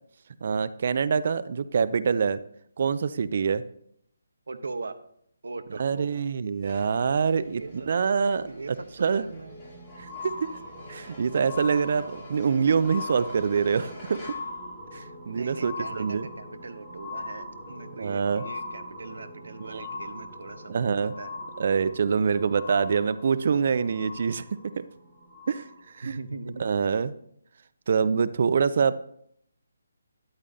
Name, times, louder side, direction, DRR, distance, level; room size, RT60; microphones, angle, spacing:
voice 1, 0.4-2.4 2.8-3.6 5.7-8.5 9.0-9.2 10.0-10.5 10.9-14.3 14.9-16.3 18.0-18.4 19.6-19.9 20.7-21.1 21.6-24.9 25.5-25.7 25.9-26.2 26.6-27.1 27.9-29.0, right 6 dB, 45° right, 15 dB, 0.5 m, -25 dB
voice 2, 4.5-5.0 5.4-6.2 7.4-7.9 8.4-9.6 15.2-21.4 22.1-22.3 23.0-23.1 26.0-26.7, right 3 dB, 65° right, 11 dB, 1.0 m, -40 dB
sound 1, 6.6-14.7, left 1 dB, 15° left, 4.9 m, -48 dB
sound 2, 9.2-26.0 26.7-26.8, left 2 dB, ahead, 2.6 m, -41 dB
13.0 x 10.5 x 2.7 m, 0.69 s
figure-of-eight pair, 145°, 0 cm